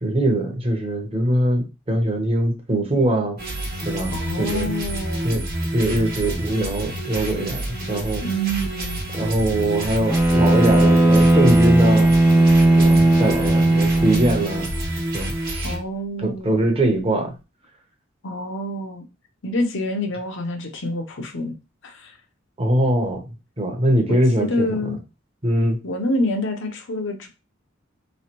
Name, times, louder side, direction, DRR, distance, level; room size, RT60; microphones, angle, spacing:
voice 1, 0.0-3.4 3.8-4.7 5.2-5.4 5.7-8.2 9.1-12.1 12.8-14.7 15.1-15.7 16.2-17.3 22.6-25.0 25.4-25.8, right 1 dB, 30° right, 2 dB, 0.9 m, -22 dB
sound 1, 3.4-15.8, right 1 dB, 50° right, 1.2 m, -28 dB
voice 2, 4.1-5.5 8.2-9.0 15.6-16.7 18.2-19.0 19.4-21.5 21.8-22.1 24.1-25.0 25.8-27.3, equal, 65° left, 4 dB, 0.8 m, -27 dB
Bowed string instrument, 10.1-14.5, right 1 dB, 10° right, 0.6 m, -16 dB
3.4 x 3.2 x 3.0 m, 0.28 s
head